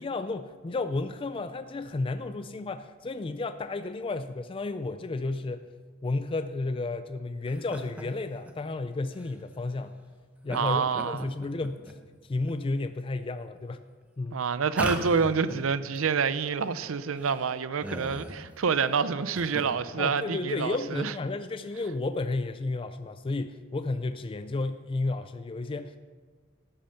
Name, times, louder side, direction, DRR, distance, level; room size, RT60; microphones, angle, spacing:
voice 1, 0.0-5.7 6.0-10.0 10.4-11.9 12.2-13.9 14.2-14.4 20.0-25.9, left 3 dB, 25° left, 0.4 m, -32 dB
sound 1, 7.5-8.0 8.5-8.6 9.1-9.3 10.5-10.6 10.9-11.9 12.4-12.9 13.5-13.6 14.7-15.7 16.0-16.1 16.2-16.3 16.8-16.9 17.1-18.5 19.1-19.6, equal, 5° right, 1.0 m, -37 dB
voice 2, 10.5-11.3 14.3-21.1, right 5 dB, 80° right, 0.5 m, -27 dB
13.0 x 8.5 x 5.7 m
head